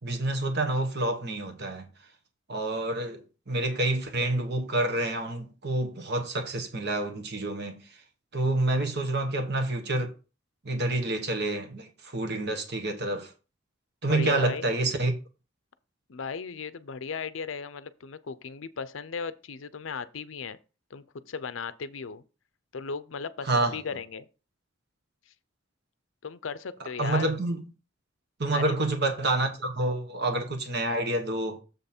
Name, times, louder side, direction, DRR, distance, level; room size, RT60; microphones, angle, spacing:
voice 1, 0.0-1.9 2.5-7.8 8.3-10.1 10.6-13.3 14.0-15.1 23.4-23.8 27.0-27.6 28.4-31.6, right 2 dB, 60° right, 1.4 m, -28 dB
voice 2, 14.1-14.7 16.1-20.6 20.9-22.2 22.7-24.3 26.2-27.3 28.5-28.7, left 5 dB, 80° left, 0.6 m, -36 dB
7.3 x 5.5 x 4.4 m
head